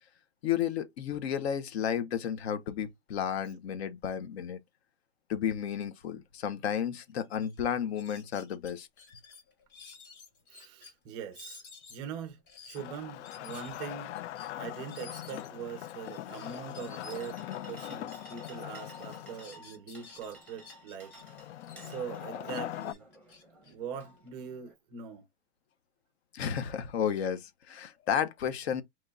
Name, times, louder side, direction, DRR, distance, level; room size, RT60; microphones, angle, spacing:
voice 1, 0.4-4.6 5.3-8.9 26.3-28.8, left 8 dB, 60° left, 0.9 m, -32 dB
sound 1, 7.0-7.1 7.4-7.6 7.9-10.9 11.3-18.6 18.9-21.2 21.6-24.5, left 4 dB, 45° left, 2.1 m, -53 dB
voice 2, 10.5-11.6 11.9-12.4 12.7-14.2 14.6-21.1 21.8-23.0 23.7-25.2, right 7 dB, 15° right, 0.5 m, -42 dB
Wood, 12.7-19.6 21.2-22.9, left 13 dB, 80° left, 0.5 m, -41 dB
sound 2, 16.7-24.7, right 1 dB, 5° left, 1.0 m, -54 dB
5.1 x 3.0 x 2.3 m
supercardioid pair, 170°, 35 cm